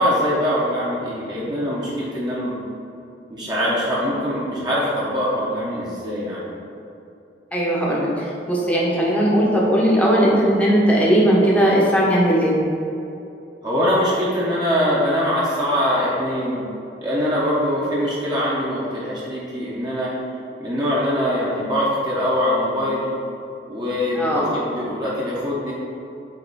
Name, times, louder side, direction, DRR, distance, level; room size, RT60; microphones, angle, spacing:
voice 1, 0.0-2.6 3.3-6.5 13.6-16.6 17.0-20.1 20.6-23.1 23.7-25.7, equal, 25° right, -7 dB, 1.1 m, -23 dB
voice 2, 7.5-12.5 24.1-24.5, equal, 10° left, -5 dB, 1.0 m, -18 dB
8.0 x 2.8 x 4.2 m, 2.7 s
head